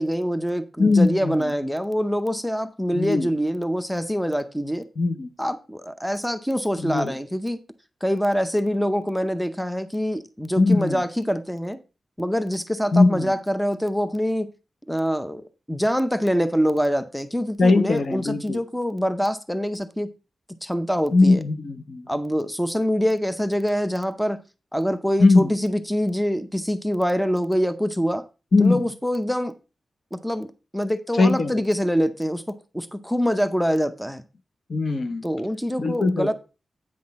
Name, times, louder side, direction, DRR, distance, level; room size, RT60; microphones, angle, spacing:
voice 1, 0.0-4.9 5.4-7.6 8.0-11.8 12.2-14.5 14.9-15.4 15.7-20.1 20.6-21.4 22.1-24.4 24.7-28.3 28.6-29.5 30.1-32.4 32.7-34.2 35.2-36.3, equal, ahead, 0.6 m, -25 dB
voice 2, 0.8-1.5 2.9-3.3 5.0-5.3 6.8-7.2 10.6-11.0 12.9-13.3 17.6-18.6 21.1-22.1 25.2-25.5 28.5-28.8 31.2-31.6 34.7-35.3 35.8-36.3, left 3 dB, 55° left, 0.8 m, -20 dB
8.7 x 5.8 x 4.1 m
wide cardioid pair, 110°, 0 cm